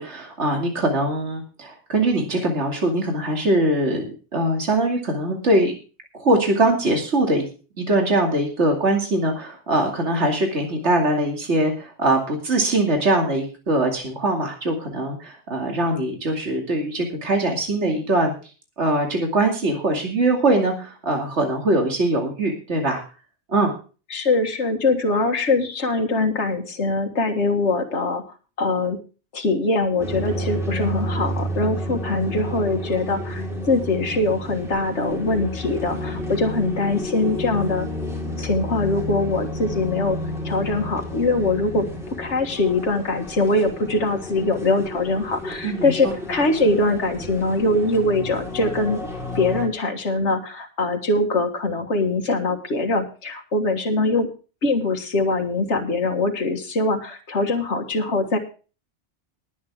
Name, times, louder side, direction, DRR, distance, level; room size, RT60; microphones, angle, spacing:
voice 1, 0.0-5.7 6.2-7.5 7.8-18.3 18.8-23.0 23.5-23.7 45.6-46.1, right 1 dB, 70° right, 2 dB, 2.8 m, -22 dB
voice 2, 24.1-28.2 28.6-29.0 29.3-37.9 38.4-40.2 40.4-49.0 49.3-54.3 54.6-58.4, left 2 dB, 70° left, 3 dB, 2.0 m, -22 dB
sound 1, 30.0-49.7, left 1 dB, ahead, 4.1 m, -31 dB
20.0 x 8.5 x 3.6 m, 0.35 s
omnidirectional pair, 1.2 m